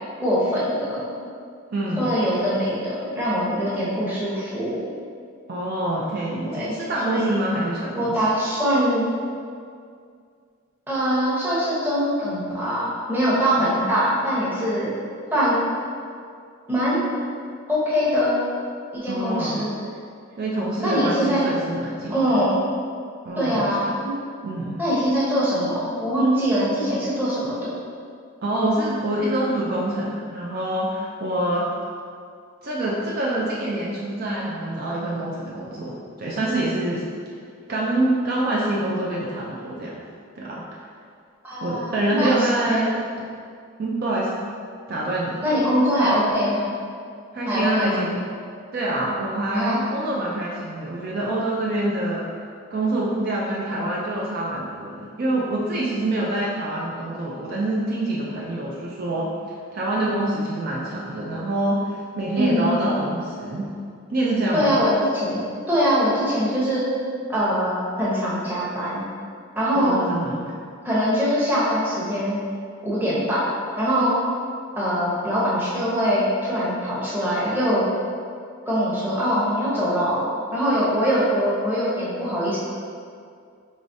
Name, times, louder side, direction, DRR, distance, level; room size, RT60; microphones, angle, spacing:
voice 1, 0.2-1.1 2.0-4.8 6.5-6.8 7.0-7.4 8.0-9.0 10.9-14.9 15.3-15.6 16.7-17.1 17.7-18.4 18.9-19.7 20.8-21.5 22.1-22.6 23.4-24.2 24.8-27.8 41.4-42.4 42.6-42.8 45.4-46.7 47.5-48.1 49.5-50.0 62.3-63.1 64.5-66.9 67.3-69.0 69.5-70.0 70.8-72.4 72.8-73.5 73.8-74.2 74.8-77.9 78.7-80.3 80.5-82.6, equal, 10° right, -9 dB, 0.9 m, -23 dB
voice 2, 1.7-2.1 5.5-8.2 13.6-13.9 19.1-19.6 20.4-22.4 23.2-23.7 24.4-24.8 28.4-31.7 32.6-37.1 37.7-40.0 40.4-40.6 41.6-43.0 43.8-44.3 44.9-45.5 47.3-48.2 48.7-52.3 52.7-59.3 59.7-63.7 64.1-64.8 69.7-70.5, right 1 dB, 45° right, -5 dB, 0.4 m, -26 dB
4.8 x 3.0 x 2.7 m, 2.2 s
head